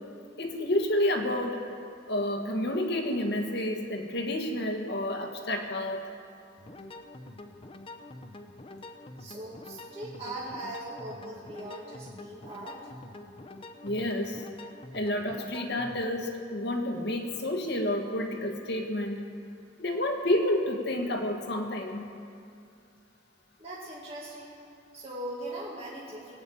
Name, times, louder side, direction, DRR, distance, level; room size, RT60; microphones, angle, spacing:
voice 1, 0.4-1.6 2.1-6.1 13.8-14.4 14.9-19.2 19.8-22.1, left 1 dB, 60° left, 3 dB, 1.6 m, -29 dB
sound 1, 6.6-16.2, left 2 dB, 30° left, 0.8 m, -46 dB
voice 2, 9.2-12.8 23.6-24.6 24.9-26.4, right 1 dB, 30° right, -6 dB, 2.1 m, -40 dB
19.5 x 8.5 x 8.6 m, 2.4 s
head